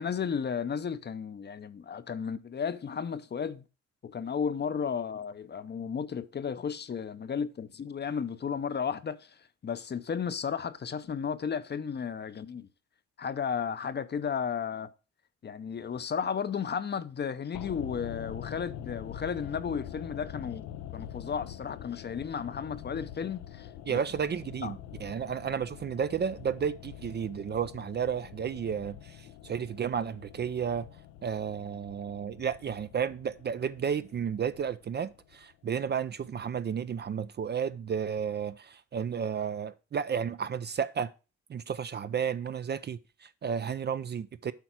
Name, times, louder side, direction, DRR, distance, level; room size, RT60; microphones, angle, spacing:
voice 1, 0.0-3.6 4.0-9.4 9.6-12.7 13.2-14.9 15.4-24.0 24.6-24.7, left 6 dB, 35° left, 0.7 m, -34 dB
sound 1, 17.5-35.7 36.0-36.1, left 11 dB, 90° left, 0.7 m, -45 dB
voice 2, 23.9-30.9 31.2-41.1 41.5-44.5, right 7 dB, 35° right, 0.4 m, -32 dB
8.2 x 4.6 x 5.9 m
cardioid pair, 90°, 30 cm